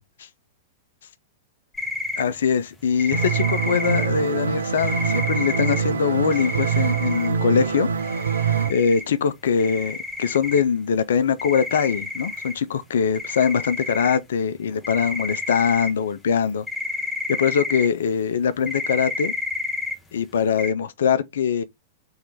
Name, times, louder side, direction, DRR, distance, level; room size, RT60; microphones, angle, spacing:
sound 1, 1.7-2.2 3.0-4.1 4.8-5.8 6.3-7.3 8.0-9.0 9.6-10.6 11.4-12.5 13.1-14.2 14.7-15.9 16.7-17.9 18.7-19.9 20.6-20.7, left 2 dB, 10° left, 0.8 m, -30 dB
voice 1, 2.2-7.9 8.7-16.7 17.4-19.3 20.1-21.6, left 7 dB, 70° left, 0.4 m, -22 dB
sound 2, 3.1-8.7, right 6 dB, 75° right, 0.4 m, -24 dB
3.1 x 2.9 x 3.7 m
figure-of-eight pair, 100°, 0 cm